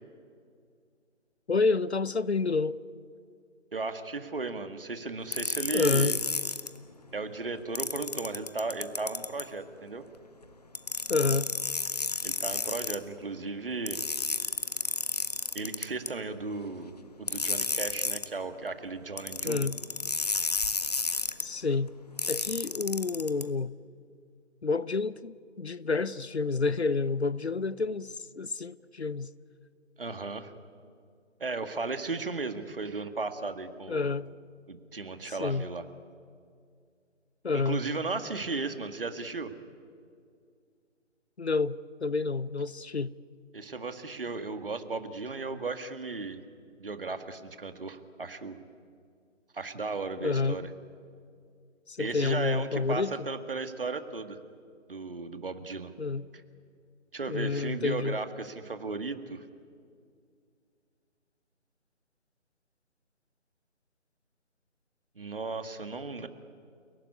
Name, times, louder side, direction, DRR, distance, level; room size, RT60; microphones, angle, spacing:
voice 1, 1.5-2.8 5.7-6.2 11.1-11.5 19.4-19.8 21.4-21.9 22.3-23.7 24.6-29.3 33.9-34.3 35.4-35.6 37.4-37.8 41.4-43.1 50.2-50.6 51.9-53.1 56.0-56.2 57.3-58.2, left 4 dB, 60° left, 0.8 m, -29 dB
voice 2, 3.7-6.2 7.1-10.0 12.2-14.0 15.5-19.7 30.0-30.5 31.4-34.1 34.7-35.8 37.5-39.5 43.5-46.4 46.8-48.6 49.5-50.7 52.0-54.4 54.9-55.9 57.1-59.5 65.2-66.3, right 3 dB, 45° right, 1.8 m, -35 dB
sound 1, 5.3-6.7 7.8-9.5 10.7-13.0 13.9-16.1 17.3-18.3 19.2-21.4 22.2-23.4, left 3 dB, 30° left, 0.9 m, -31 dB
29.5 x 18.0 x 9.7 m
figure-of-eight pair, 155°, 38 cm